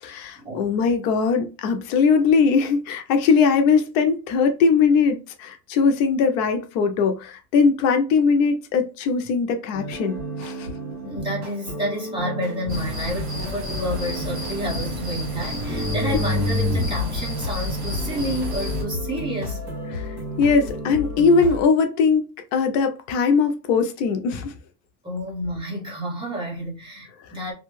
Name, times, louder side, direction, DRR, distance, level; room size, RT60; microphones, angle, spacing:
voice 1, 0.0-10.7 16.0-16.3 19.9-24.5, left 5 dB, 60° left, 0.6 m, -20 dB
sound 1, 9.7-21.7, right 1 dB, 60° right, 1.3 m, -32 dB
voice 2, 11.0-19.6 25.0-27.5, equal, 10° right, 0.7 m, -30 dB
sound 2, 12.7-18.8, left 2 dB, 40° right, 1.3 m, -28 dB
2.6 x 2.3 x 3.0 m
cardioid pair, 170°, 42 cm